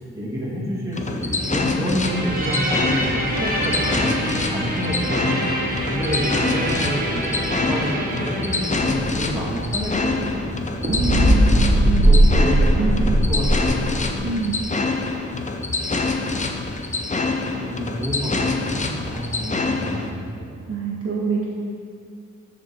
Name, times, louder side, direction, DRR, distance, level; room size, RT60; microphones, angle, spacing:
voice 1, 0.0-5.4 5.8-11.1 12.0-14.4 17.5-20.2, equal, 10° right, -6 dB, 2.4 m, -28 dB
sound 1, 0.9-20.1, left 3 dB, 25° left, 0.6 m, -26 dB
sound 2, 2.0-10.6 10.8-13.7, right 1 dB, 30° right, 1.2 m, -21 dB
voice 2, 10.9-12.2 12.8-13.1 14.2-14.6 20.5-21.5, right 4 dB, 50° right, -5 dB, 1.4 m, -25 dB
13.0 x 5.1 x 4.4 m, 2.2 s
wide cardioid pair, 115°, 30 cm